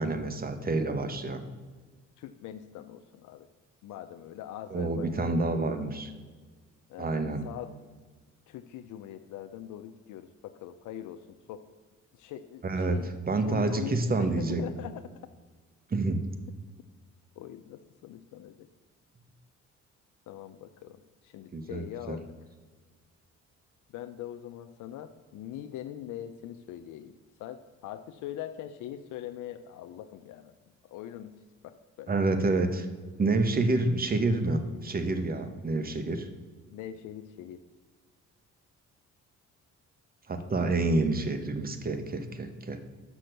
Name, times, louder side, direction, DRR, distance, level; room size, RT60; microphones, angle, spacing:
voice 1, 0.0-1.4 4.7-6.1 7.0-7.5 12.6-13.0 13.3-14.6 15.9-16.3 21.5-22.2 32.1-32.9 33.2-36.3 40.3-42.8, right 2 dB, 30° right, 9 dB, 0.9 m, -28 dB
voice 2, 2.2-3.5 3.8-5.4 6.9-7.7 8.5-11.6 12.1-13.1 13.5-15.0 17.4-18.7 20.3-22.2 23.9-30.5 30.8-31.3 31.6-32.1 36.7-37.6, left 11 dB, 85° left, 8 dB, 0.5 m, -42 dB
6.2 x 6.1 x 6.6 m, 1.5 s
cardioid pair, 90°, 30 cm